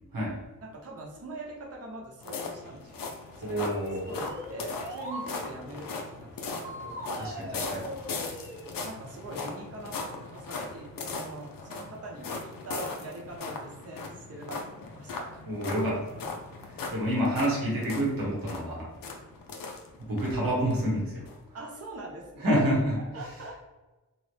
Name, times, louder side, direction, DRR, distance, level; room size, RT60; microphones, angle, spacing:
voice 1, 0.6-3.7 4.1-7.2 8.8-15.4 21.5-22.6 23.1-23.6, right 2 dB, 45° right, -1 dB, 0.7 m, -43 dB
sound 1, 2.2-20.3 20.7-20.8 21.3-21.4, left 4 dB, 75° left, 0.5 m, -39 dB
voice 2, 3.4-4.1 7.2-7.9 15.4-16.2 16.9-18.9 20.0-21.3 22.4-23.0, equal, 85° right, -5 dB, 1.2 m, -28 dB
sound 2, 3.5-5.3 6.6-8.7, equal, 10° right, 1.1 m, -40 dB
2.9 x 2.1 x 3.1 m, 1.1 s
cardioid pair, 50°, 33 cm